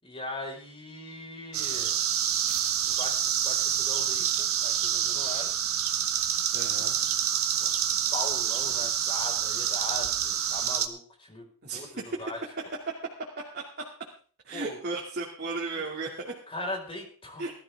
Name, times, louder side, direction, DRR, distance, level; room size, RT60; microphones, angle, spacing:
voice 1, 0.0-2.0 2.8-5.5 6.6-6.7 7.6-7.7 8.1-11.9 12.2-12.4 14.5-14.8 16.5-17.5, left 2 dB, 25° left, 0 dB, 5.1 m, -39 dB
sound 1, 1.5-10.9, right 9 dB, 65° right, 1.6 m, -27 dB
voice 2, 6.5-7.0 11.6-11.9 13.5-13.6 14.4-16.3 17.4-17.5, right 3 dB, 45° right, -3 dB, 2.6 m, -35 dB
19.5 x 13.0 x 3.6 m, 0.44 s
head